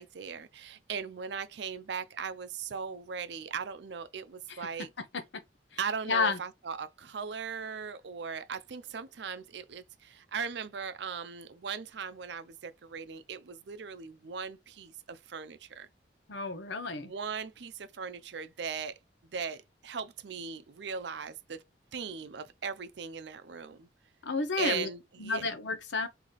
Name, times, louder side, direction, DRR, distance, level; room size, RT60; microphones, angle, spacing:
voice 1, 0.0-4.9 5.8-15.9 17.0-18.9 19.3-21.6 21.9-23.9 24.6-25.5, right 6 dB, 70° right, 0.5 m, -38 dB
voice 2, 6.1-6.4 16.3-17.1 24.2-24.9 25.2-26.1, left 4 dB, 75° left, 0.7 m, -31 dB
4.0 x 2.8 x 3.2 m
head